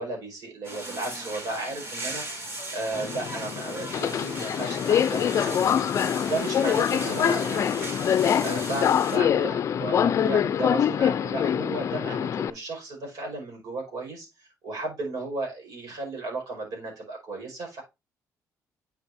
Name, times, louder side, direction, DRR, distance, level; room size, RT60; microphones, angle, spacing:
voice 1, 0.0-5.6 6.2-17.8, right 2 dB, 70° right, 1 dB, 5.2 m, -34 dB
sound 1, 0.6-9.2, right 1 dB, 40° right, 4.1 m, -38 dB
Subway metro underground, 2.9-12.5, left 9 dB, 50° left, 0.5 m, -25 dB
8.9 x 7.0 x 2.7 m, 0.23 s
cardioid pair, 120°, 6 cm